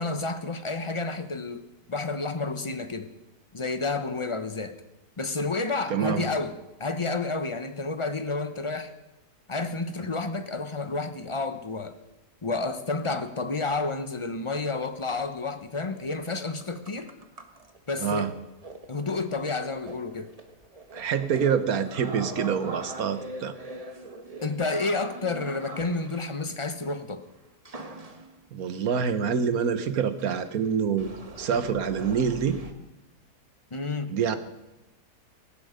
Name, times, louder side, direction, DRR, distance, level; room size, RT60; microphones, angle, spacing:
voice 1, 0.0-1.6 1.9-3.1 3.5-4.8 5.2-6.5 6.8-8.9 9.5-12.0 12.4-17.1 17.9-18.3 18.9-20.3 24.4-27.2 33.7-34.2, left 3 dB, 25° left, 10 dB, 0.8 m, -30 dB
voice 2, 5.9-6.3 18.0-18.3 20.9-23.5 28.5-31.1 31.4-32.6 34.1-34.4, right 7 dB, 60° right, 11 dB, 1.5 m, -26 dB
sound 1, 15.1-15.5 16.0-16.3 16.5-26.7 27.7-28.5 29.2-29.3 29.6-29.7 30.2-32.7, right 2 dB, 25° right, 1.4 m, -42 dB
18.0 x 15.5 x 5.2 m, 0.99 s
omnidirectional pair, 1.8 m